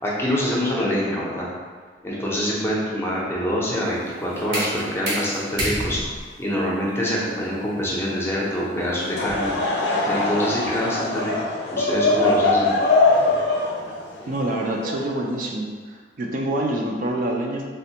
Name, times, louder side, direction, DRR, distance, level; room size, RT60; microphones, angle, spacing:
voice 1, 0.0-1.5 2.0-6.0 6.4-9.5 10.1-12.7, equal, 15° left, -5 dB, 0.5 m, -25 dB
sound 1, 3.8-9.6, right 1 dB, 85° right, 1.1 m, -31 dB
Laughter / Crowd, 9.0-15.4, left 2 dB, 85° left, 0.5 m, -22 dB
voice 2, 14.3-17.7, right 1 dB, 50° right, 0 dB, 0.3 m, -26 dB
3.3 x 2.1 x 2.7 m, 1.5 s
head